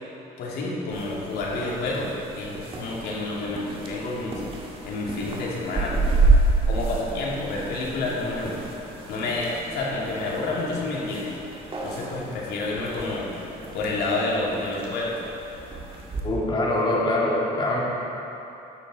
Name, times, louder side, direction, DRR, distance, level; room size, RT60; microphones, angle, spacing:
voice 1, 0.4-4.4 4.8-6.2 6.7-8.6 9.1-11.4 11.8-13.5 13.7-15.2, left 2 dB, 75° left, -4 dB, 2.6 m, -29 dB
sound 1, 0.9-16.2, right 3 dB, 30° right, 2.0 m, -29 dB
voice 2, 16.2-17.8, left 1 dB, 30° left, -4 dB, 2.5 m, -23 dB
13.0 x 9.3 x 4.2 m, 3.0 s
cardioid pair, 110°, 17 cm